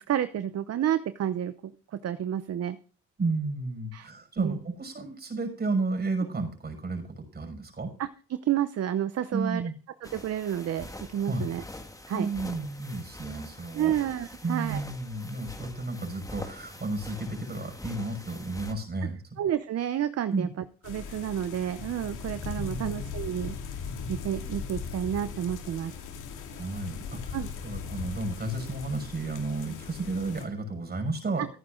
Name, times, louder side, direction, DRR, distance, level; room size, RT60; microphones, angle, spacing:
voice 1, 0.1-1.5 1.9-2.8 3.9-4.1 4.4-4.6 8.0-9.6 10.0-11.6 12.1-12.3 13.7-14.8 19.4-20.5 20.8-23.6 24.1-25.9 27.3-27.5 31.4-31.5, right 10 dB, 55° right, 12 dB, 0.8 m, -30 dB
voice 2, 3.2-7.9 9.3-9.7 11.3-11.5 12.1-13.9 14.4-19.2 20.3-20.5 22.6-23.0 26.5-31.5, right 3 dB, 30° right, 3 dB, 5.7 m, -32 dB
sound 1, 10.0-18.7, left 1 dB, 10° left, 1.9 m, -44 dB
sound 2, 20.8-30.4, left 6 dB, 85° left, 2.6 m, -39 dB
14.5 x 9.5 x 3.9 m, 0.40 s
cardioid pair, 90°, 30 cm